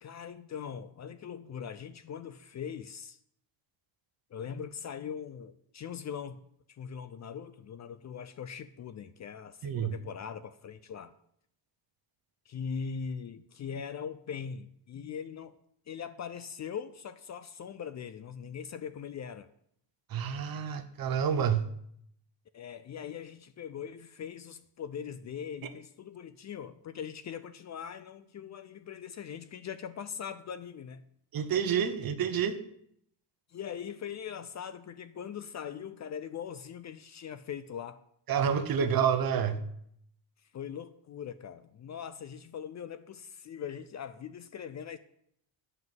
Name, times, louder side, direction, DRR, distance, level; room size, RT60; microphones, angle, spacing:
voice 1, 0.0-3.2 4.3-6.4 6.7-11.1 12.5-15.5 15.9-19.5 22.5-31.0 33.5-38.0 40.5-45.0, left 7 dB, 40° left, 0.5 m, -41 dB
voice 2, 9.6-9.9 20.1-21.7 31.3-32.6 38.3-39.6, right 7 dB, 50° right, 1.0 m, -28 dB
9.5 x 5.5 x 7.8 m
cardioid pair, 150°, 46 cm